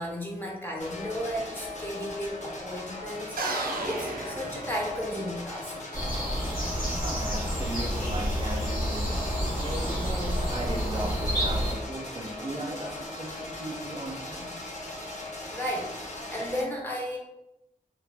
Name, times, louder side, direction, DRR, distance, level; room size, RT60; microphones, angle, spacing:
voice 1, 0.0-5.7 15.5-17.2, equal, 15° left, -2 dB, 0.6 m, -34 dB
sound 1, 0.8-16.6, left 2 dB, 55° left, 0.6 m, -39 dB
sound 2, 3.4-5.3, right 2 dB, 90° right, 0.4 m, -33 dB
sound 3, 5.9-11.7, equal, 75° left, 1.1 m, -29 dB
voice 2, 7.0-14.4, right 1 dB, 35° right, -1 dB, 0.5 m, -37 dB
2.3 x 2.1 x 3.3 m, 0.91 s
wide cardioid pair, 105°, 15 cm